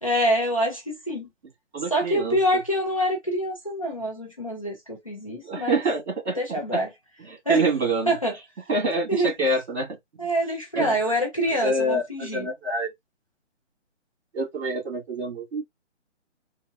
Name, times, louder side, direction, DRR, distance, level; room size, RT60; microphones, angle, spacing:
voice 1, 0.0-1.3 1.9-5.8 6.4-6.9 7.5-7.6 8.1-8.3 9.1-9.3 10.2-12.5, equal, 30° left, 0.6 m, -25 dB
voice 2, 1.7-2.4 5.4-6.8 7.2-8.2 8.7-10.0 10.8-11.0 11.6-12.9 14.3-15.6, right 2 dB, 60° right, 2.0 m, -26 dB
3.9 x 2.1 x 2.4 m
hypercardioid pair, 175°, 36 cm